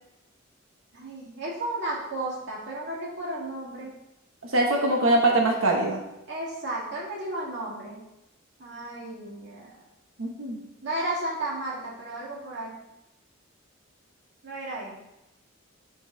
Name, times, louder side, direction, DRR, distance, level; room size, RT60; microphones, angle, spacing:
voice 1, 0.9-3.9 4.8-4.9 6.3-8.0 8.6-9.8 10.8-12.7 14.4-15.0, right 1 dB, 60° right, -4 dB, 2.2 m, -33 dB
voice 2, 4.4-6.0 10.2-10.6, right 2 dB, 85° right, 1 dB, 1.1 m, -23 dB
6.8 x 5.2 x 3.9 m, 0.90 s
head